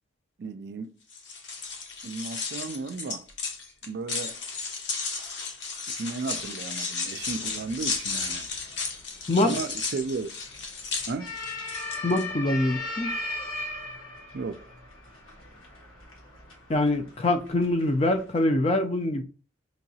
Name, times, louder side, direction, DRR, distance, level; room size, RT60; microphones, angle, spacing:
voice 1, 0.4-1.0 2.0-3.3 3.8-4.4 5.9-8.5 9.4-10.4 11.1-11.4 14.3-14.7, right 4 dB, 55° right, 0.3 m, -34 dB
sound 1, 1.1-12.2, left 4 dB, 60° left, 0.8 m, -34 dB
sound 2, 7.2-18.4, left 2 dB, 85° left, 1.4 m, -39 dB
voice 2, 12.0-13.1 16.7-19.2, left 1 dB, 30° left, 0.4 m, -24 dB
5.2 x 2.8 x 2.7 m
head